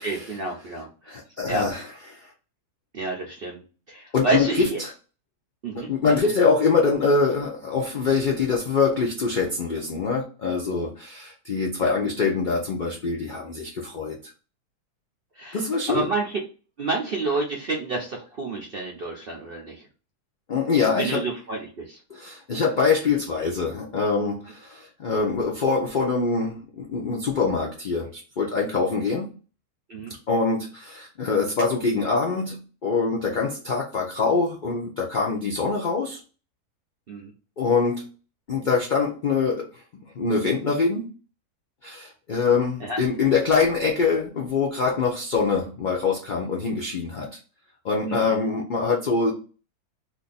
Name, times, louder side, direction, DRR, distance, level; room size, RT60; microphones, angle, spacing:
voice 1, 0.0-1.2 1.5-1.7 2.9-3.6 3.9-4.8 5.6-5.9 11.8-11.9 15.4-15.6 15.9-16.4 16.8-19.8 21.0-22.0 29.9-30.1 37.1-37.3 42.8-43.0 48.1-48.4, right 3 dB, 65° right, 0 dB, 0.6 m, -29 dB
voice 2, 1.1-1.9 4.1-4.9 5.8-14.2 15.5-16.1 20.5-21.2 22.1-29.3 30.3-36.2 37.6-38.1 38.5-39.8 40.2-41.1 41.8-47.3 47.8-49.3, left 4 dB, 75° left, -1 dB, 0.4 m, -24 dB
2.6 x 2.5 x 3.9 m, 0.36 s
omnidirectional pair, 1.7 m